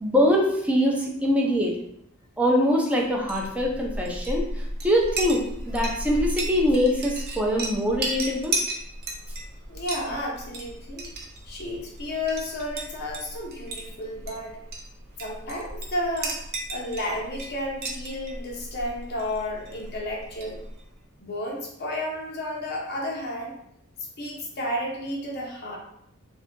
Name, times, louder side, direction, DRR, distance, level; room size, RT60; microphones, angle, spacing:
voice 1, 0.0-1.8 2.4-4.5 4.8-8.6, equal, 5° right, -1 dB, 0.5 m, -23 dB
Chink clink, 3.1-20.9, right 2 dB, 50° right, 0.6 m, -35 dB
voice 2, 9.7-11.1 11.5-14.6 15.2-20.6 21.2-23.5 24.2-25.8, left 1 dB, 50° left, -2 dB, 0.7 m, -32 dB
2.7 x 2.5 x 3.6 m, 0.74 s
head